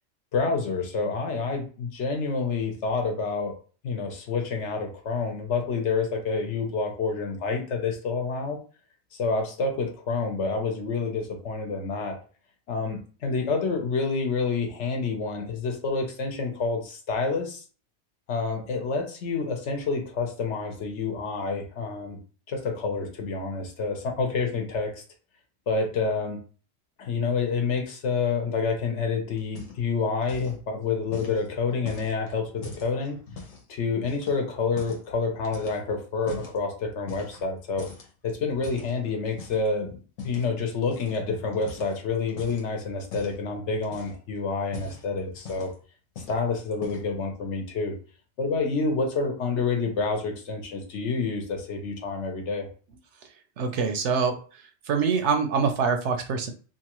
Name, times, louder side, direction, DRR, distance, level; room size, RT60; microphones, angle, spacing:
voice 1, 0.3-3.6 3.8-8.6 9.1-12.2 12.7-17.6 18.3-22.2 22.5-25.0 25.7-26.4 27.0-33.2 33.7-37.9 38.2-45.7 46.3-47.9 48.4-52.7, left 4 dB, 65° left, 3 dB, 1.0 m, -28 dB
sound 1, 29.4-30.0 30.2-30.6 31.1-33.7 34.1-35.1 35.4-36.6 37.1-37.5 37.8-39.7 40.2-40.5 40.9-41.2 41.5-42.7 43.1-43.4 43.8-44.3 44.6-45.8 46.2-46.4 46.7-47.2, left 4 dB, 90° left, 1.2 m, -42 dB
voice 2, 53.6-54.4 54.9-56.5, right 5 dB, 70° right, 5 dB, 0.8 m, -24 dB
2.9 x 2.4 x 2.9 m, 0.38 s
omnidirectional pair, 1.3 m